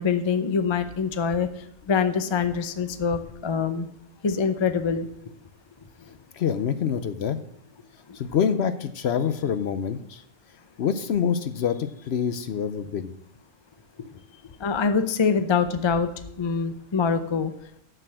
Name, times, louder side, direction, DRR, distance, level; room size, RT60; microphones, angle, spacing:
voice 1, 0.0-1.5 1.9-3.9 4.2-5.1 14.6-16.1 16.4-17.5, left 5 dB, 35° left, 10 dB, 0.4 m, -24 dB
voice 2, 6.3-7.4 8.1-10.2 10.8-13.1, left 7 dB, 65° left, 11 dB, 0.8 m, -26 dB
6.6 x 6.4 x 7.6 m, 0.74 s
omnidirectional pair, 1.3 m